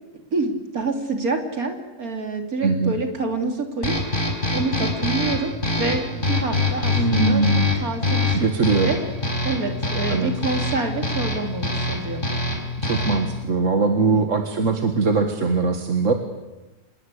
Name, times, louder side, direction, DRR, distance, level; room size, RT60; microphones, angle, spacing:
voice 1, 0.3-4.0 4.5-7.4 7.8-9.0 9.4-12.2 14.1-14.3, right 3 dB, 80° right, 5 dB, 3.4 m, -27 dB
voice 2, 2.6-2.9 6.9-7.7 8.3-8.9 10.1-10.3 12.8-16.1, right 4 dB, 60° right, 5 dB, 1.9 m, -21 dB
sound 1, 3.8-13.4, left 2 dB, 35° left, 5.2 m, -25 dB
26.0 x 21.0 x 8.3 m, 1.1 s
omnidirectional pair, 1.5 m